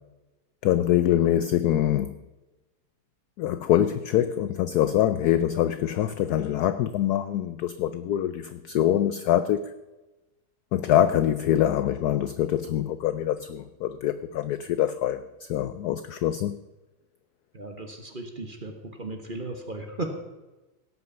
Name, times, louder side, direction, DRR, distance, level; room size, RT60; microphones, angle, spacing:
voice 1, 0.6-2.1 3.4-9.6 10.7-15.2 15.5-16.6, left 11 dB, 75° left, 0.9 m, -24 dB
voice 2, 17.5-20.2, right 2 dB, 30° right, 1.2 m, -36 dB
17.0 x 6.4 x 6.8 m
omnidirectional pair, 2.2 m